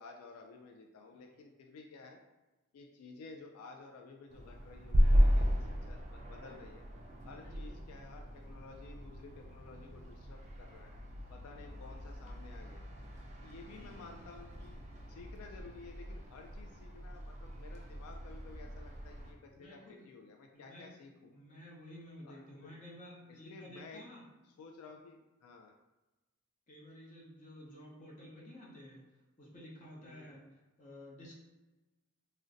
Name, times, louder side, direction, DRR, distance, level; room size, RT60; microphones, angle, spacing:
voice 1, 0.0-2.2 2.7-6.9 7.2-10.9 11.3-12.8 13.4-14.8 15.1-21.3 22.2-22.7 23.3-24.0 24.4-25.7 30.0-30.4, left 4 dB, 85° left, 3 dB, 0.3 m, -53 dB
sound 1, 4.3-19.3, equal, 30° right, 0.4 m, -35 dB
voice 2, 7.3-7.8 13.7-14.3 19.5-20.1 20.5-20.9 21.3-24.2 26.7-29.0 29.4-30.4 30.8-31.4, left 1 dB, 35° left, -4 dB, 0.7 m, -52 dB
2.5 x 2.1 x 3.8 m, 1.1 s
head